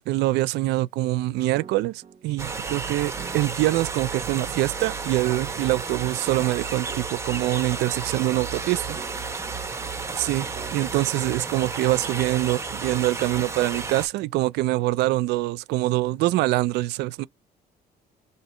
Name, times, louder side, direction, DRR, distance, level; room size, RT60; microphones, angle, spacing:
voice 1, 0.0-9.0 10.1-17.3, right 17 dB, 80° right, 0.4 m, -24 dB
sound 1, 1.5-2.7 3.2-4.3 5.2-6.4 6.9-8.3 8.9-10.1 10.5-12.0, right 7 dB, 45° right, 0.7 m, -47 dB
sound 2, 2.4-14.1, right 4 dB, 15° right, 0.9 m, -32 dB
2.8 x 2.8 x 4.3 m
cardioid pair, 110°, 17 cm